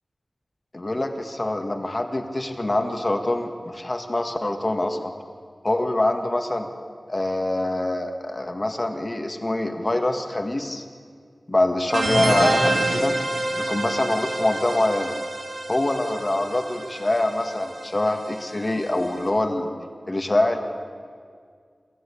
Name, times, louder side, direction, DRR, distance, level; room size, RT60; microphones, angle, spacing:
voice 1, 0.7-5.1 5.6-6.7 7.1-10.9 11.5-13.2 13.6-15.2 15.7-19.7 20.1-20.6, left 1 dB, 35° left, 5 dB, 2.0 m, -24 dB
sound 1, 11.9-19.2, right 2 dB, 85° right, 3.0 m, -27 dB
28.0 x 13.0 x 8.6 m, 2.1 s
wide cardioid pair, 75°, 0 cm